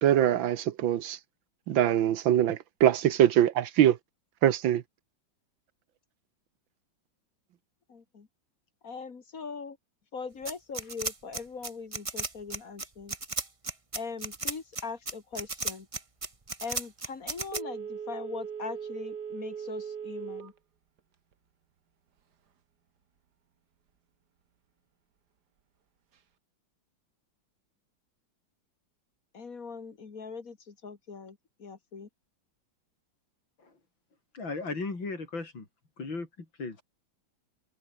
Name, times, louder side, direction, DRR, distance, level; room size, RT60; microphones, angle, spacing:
voice 1, 0.0-1.2 1.7-4.0 4.4-4.8, right 11 dB, 85° right, 1.8 m, -23 dB
voice 2, 7.9-8.3 8.8-9.8 10.1-13.2 13.9-15.9 16.6-20.5 29.3-32.1, left 5 dB, 45° left, 2.4 m, -41 dB
sound 1, 10.5-17.6, right 3 dB, 20° right, 1.2 m, -34 dB
Telephone, 17.5-20.6 21.0-21.1, right 7 dB, 60° right, 2.1 m, -39 dB
voice 3, 34.3-35.7 36.0-36.8, left 3 dB, 80° left, 5.6 m, -36 dB
omnidirectional pair, 2.1 m